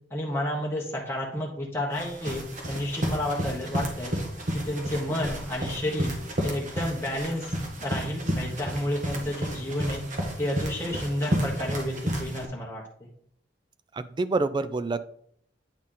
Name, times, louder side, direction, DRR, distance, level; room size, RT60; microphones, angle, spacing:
voice 1, 0.1-4.1 4.5-6.1 6.4-7.5 7.8-10.0 10.4-13.1, left 1 dB, 15° left, -2 dB, 1.0 m, -31 dB
sound 1, 1.9-12.5, equal, 45° right, 1.4 m, -32 dB
voice 2, 13.9-15.0, right 3 dB, 25° right, 13 dB, 0.3 m, -27 dB
8.7 x 4.1 x 3.8 m, 0.66 s
head